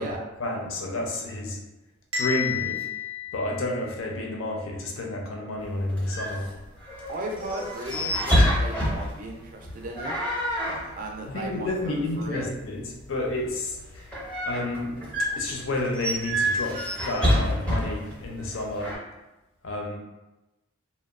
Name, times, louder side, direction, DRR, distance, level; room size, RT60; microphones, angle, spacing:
voice 1, 0.4-1.6 2.1-2.9 3.3-6.5 11.3-14.1 14.5-15.0 15.4-18.9 19.6-20.0, left 2 dB, 65° left, 1 dB, 0.5 m, -30 dB
Bell, 2.1-4.2, left 7 dB, 90° right, 0.7 m, -31 dB
sound 1, 5.6-19.0, equal, 5° left, 0.6 m, -29 dB
voice 2, 7.1-10.2 11.0-12.5, right 1 dB, 40° right, 1 dB, 0.4 m, -35 dB
2.8 x 2.0 x 2.4 m, 1.0 s
head